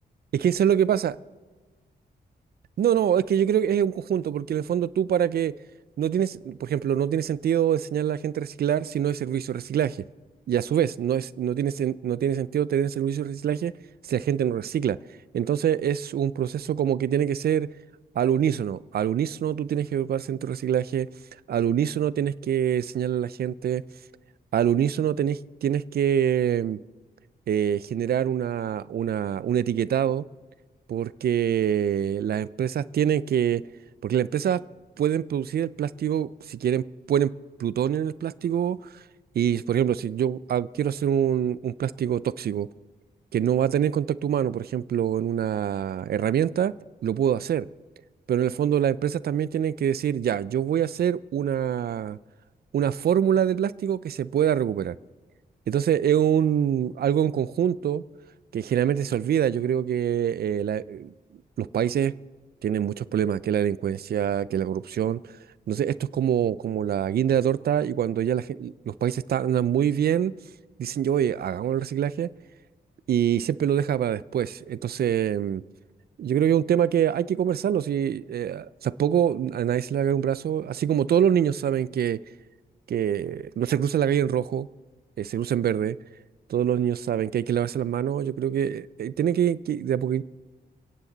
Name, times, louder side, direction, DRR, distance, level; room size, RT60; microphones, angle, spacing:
voice 1, 0.3-1.1 2.8-5.5 6.0-10.0 10.5-13.7 14.0-15.0 15.3-17.7 18.2-21.1 21.5-23.8 24.5-26.8 27.5-30.2 30.9-33.6 34.0-34.6 35.0-37.3 37.6-38.8 39.3-42.7 43.3-46.7 47.0-47.7 48.3-52.2 52.7-54.9 55.7-58.0 58.5-61.1 61.6-62.1 62.6-65.2 65.7-70.3 70.8-72.3 73.1-75.6 76.2-82.2 82.9-84.7 85.2-86.0 86.5-90.2, right 9 dB, 70° right, 0.5 m, -25 dB
29.0 x 10.0 x 4.0 m
cardioid pair, 80°, 17 cm